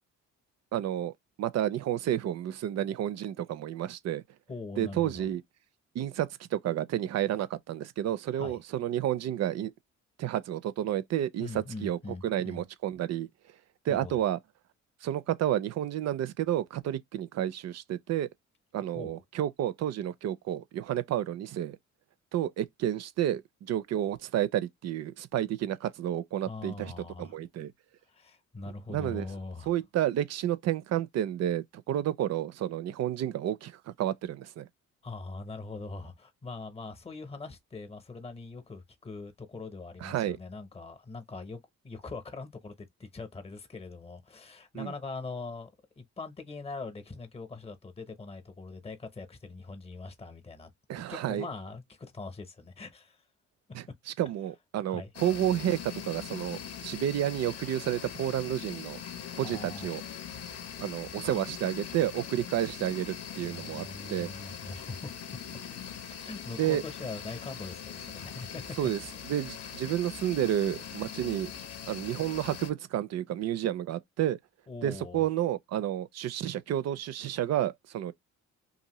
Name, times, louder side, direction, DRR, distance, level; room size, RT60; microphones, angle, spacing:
voice 1, 0.7-1.1 1.4-4.2 4.8-5.4 5.9-9.7 10.2-13.3 13.9-14.4 15.0-18.3 18.7-21.8 22.3-27.7 28.9-29.3 29.7-34.7 40.0-40.4 44.7-44.9 50.9-51.5 53.7-59.0 59.3-60.0 60.8-64.3 66.6-66.8 68.8-71.5 71.9-74.4 74.8-78.1, right 11 dB, 60° right, 0.5 m, -31 dB
voice 2, 4.5-5.3 8.3-8.6 11.4-12.6 13.9-14.2 18.9-19.2 26.4-27.4 28.1-29.7 35.0-45.7 46.0-50.7 51.1-53.2 54.9-55.1 59.4-59.9 61.2-61.4 63.4-65.2 66.2-68.6 74.7-75.2, left 3 dB, 20° left, 0.7 m, -42 dB
sound 1, 55.1-72.7, left 8 dB, 55° left, 0.7 m, -42 dB
2.7 x 2.6 x 2.9 m
cardioid pair, 90°, 30 cm